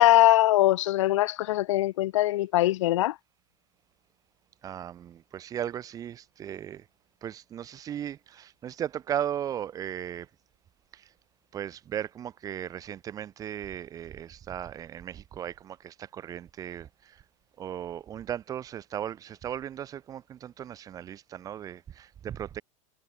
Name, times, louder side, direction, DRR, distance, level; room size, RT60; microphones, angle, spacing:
voice 1, 0.0-3.1, left 15 dB, 65° left, 4.5 m, -21 dB
voice 2, 4.6-6.8 7.2-10.3 11.5-16.9 17.6-22.6, right 10 dB, 20° right, 7.3 m, -36 dB
supercardioid pair, 165°, 17 cm